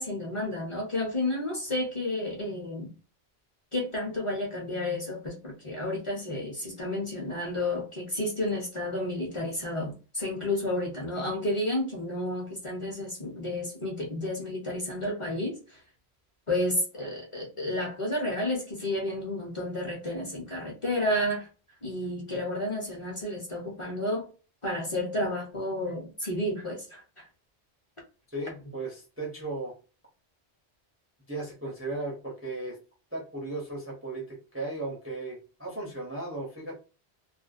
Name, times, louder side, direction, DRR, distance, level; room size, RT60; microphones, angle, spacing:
voice 1, 0.0-2.9 3.7-15.6 16.5-21.5 21.8-24.3 24.6-27.0, left 1 dB, 35° left, 0.7 m, -31 dB
voice 2, 28.3-29.7 31.3-32.8 33.1-36.7, right 2 dB, 15° right, 0.5 m, -36 dB
2.4 x 2.1 x 2.4 m
omnidirectional pair, 1.1 m